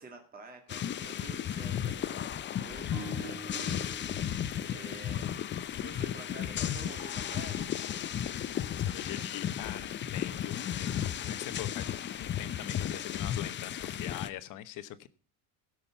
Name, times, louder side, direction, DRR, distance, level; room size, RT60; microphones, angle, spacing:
voice 1, 0.0-4.3 4.7-5.4 5.8-7.7, right 3 dB, 25° right, 3 dB, 1.9 m, -48 dB
sound 1, 0.7-14.3, left 10 dB, 30° left, 0.6 m, -34 dB
sound 2, 2.9-6.1, right 1 dB, 60° right, 4.9 m, -47 dB
voice 2, 8.8-15.1, left 12 dB, 55° left, 13 dB, 1.1 m, -43 dB
16.5 x 6.4 x 5.7 m, 0.38 s
cardioid pair, 130°, 37 cm